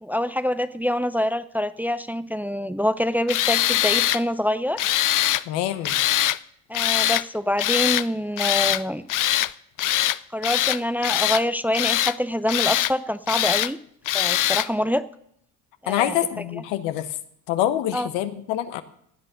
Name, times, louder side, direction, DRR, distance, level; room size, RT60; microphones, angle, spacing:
voice 1, 0.0-4.9 6.7-9.0 10.3-13.8 14.1-15.0 15.8-16.2 17.9-18.1, equal, 5° right, 13 dB, 0.6 m, -25 dB
Tools, 3.3-4.2 4.8-5.4 5.8-6.4 6.7-7.2 7.6-8.1 8.4-8.8 9.1-9.5 9.8-10.2 10.4-11.4 11.7-12.2 12.5-12.9 13.3-13.7 14.1-14.7, left 14 dB, 45° left, 0.6 m, -22 dB
voice 2, 5.5-6.0 15.9-17.1 17.5-18.8, left 12 dB, 80° left, 10 dB, 1.3 m, -25 dB
16.5 x 9.0 x 6.6 m, 0.70 s
supercardioid pair, 70°, 43 cm